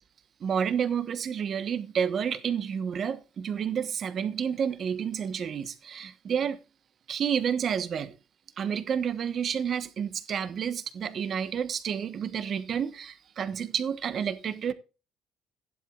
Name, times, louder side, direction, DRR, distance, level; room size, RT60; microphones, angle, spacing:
voice 1, 0.4-6.6 7.1-8.1 8.6-14.7, right 7 dB, 40° right, 1.2 m, -30 dB
15.5 x 11.0 x 2.5 m
cardioid pair, 140°, 0 cm